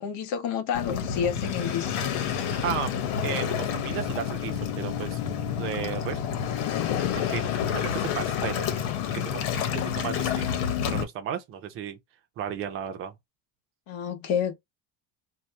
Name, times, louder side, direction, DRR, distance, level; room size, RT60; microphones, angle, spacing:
voice 1, 0.0-2.0 13.9-14.5, left 7 dB, 55° left, 1.0 m, -29 dB
Waves surf, 0.7-11.0, left 8 dB, 90° left, 1.0 m, -29 dB
voice 2, 2.6-2.9 3.2-5.2 5.6-6.2 6.7-8.7 9.1-10.5 10.9-12.0 12.4-13.1, right 9 dB, 35° right, 0.7 m, -34 dB
2.8 x 2.2 x 3.2 m
cardioid pair, 165°, 36 cm